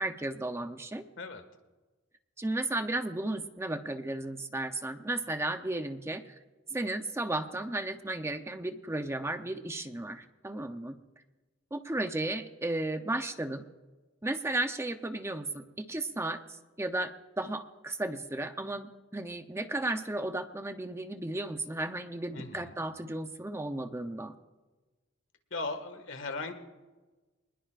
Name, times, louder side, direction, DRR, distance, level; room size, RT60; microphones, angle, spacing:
voice 1, 0.0-1.1 2.4-6.4 6.7-11.0 11.7-13.6 14.2-17.1 17.4-24.4, right 2 dB, 15° right, 7 dB, 0.7 m, -34 dB
voice 2, 22.3-22.8 25.5-26.5, left 3 dB, 70° left, 7 dB, 1.8 m, -37 dB
25.0 x 20.5 x 2.5 m, 1.2 s
head